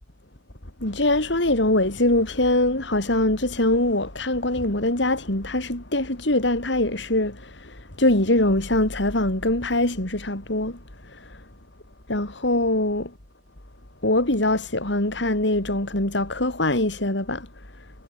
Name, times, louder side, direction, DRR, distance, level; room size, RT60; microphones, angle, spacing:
voice 1, 0.8-10.8 11.0-11.4 12.1-13.1 14.0-17.5, left 1 dB, 70° left, 4.1 m, -23 dB
head